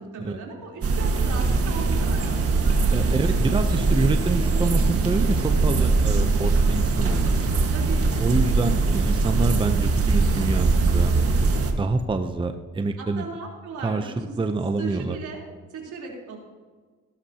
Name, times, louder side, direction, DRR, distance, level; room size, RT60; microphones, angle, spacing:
voice 1, 0.0-3.2 7.7-8.9 13.0-14.3 14.8-15.4 15.7-16.4, right 4 dB, 75° right, -2 dB, 3.7 m, -37 dB
sound 1, 0.8-11.7, right 3 dB, 50° right, 1.7 m, -21 dB
voice 2, 2.9-7.4 8.2-11.1 11.8-13.3 13.8-15.2, right 3 dB, 15° right, 7 dB, 0.7 m, -27 dB
18.5 x 12.0 x 2.9 m, 1.5 s
cardioid pair, 90°, 30 cm